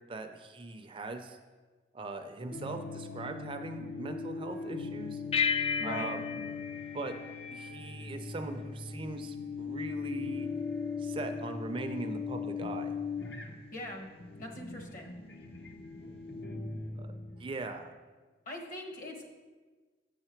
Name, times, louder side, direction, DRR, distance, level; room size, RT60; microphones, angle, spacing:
voice 1, 0.1-1.4 1.9-5.2 5.8-6.3 6.9-7.1 7.5-10.5 11.0-12.9 17.0-17.1 17.4-17.9, right 3 dB, 30° right, 6 dB, 0.4 m, -40 dB
sound 1, 2.5-17.6, left 5 dB, 65° left, 0.9 m, -39 dB
sound 2, 5.3-8.1, left 7 dB, 30° left, 0.3 m, -33 dB
voice 2, 5.8-6.1 13.7-14.1 14.4-15.1 18.5-19.3, left 1 dB, 50° left, 2 dB, 1.1 m, -41 dB
8.1 x 5.7 x 4.4 m, 1.3 s
head